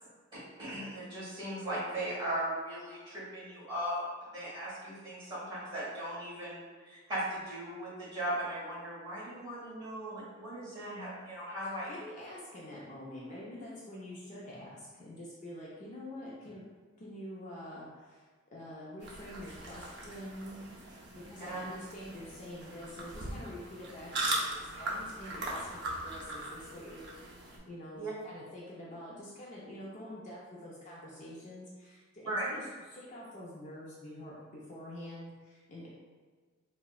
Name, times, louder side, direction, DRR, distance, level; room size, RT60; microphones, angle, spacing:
voice 1, 0.3-4.0 4.3-11.9 21.5-21.6 28.0-28.1 32.2-32.6, right 1 dB, 20° right, -8 dB, 1.5 m, -38 dB
voice 2, 11.6-16.7 17.0-20.7 21.1-27.1 27.4-35.9, left 1 dB, 35° left, -5 dB, 0.4 m, -46 dB
sound 1, 19.0-27.6, right 2 dB, 50° right, 0.5 m, -39 dB
3.7 x 2.1 x 2.4 m, 1.4 s
head